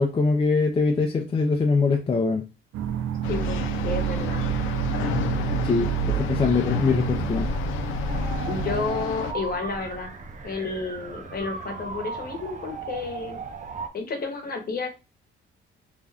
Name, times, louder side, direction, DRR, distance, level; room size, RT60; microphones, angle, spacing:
voice 1, 0.0-2.4 5.6-7.5, left 4 dB, 25° left, 2 dB, 0.5 m, -23 dB
sound 1, 2.7-8.9, right 8 dB, 85° right, 0.5 m, -31 dB
sound 2, 3.2-9.3, equal, 90° left, 0.4 m, -29 dB
voice 2, 3.3-4.4 6.0-6.2 8.5-10.1 10.4-13.4 13.9-14.9, left 4 dB, 50° left, 4 dB, 1.0 m, -31 dB
sound 3, 8.1-13.9, right 4 dB, 40° right, 0.6 m, -36 dB
2.6 x 2.2 x 3.4 m, 0.29 s
cardioid pair, 90°, 20 cm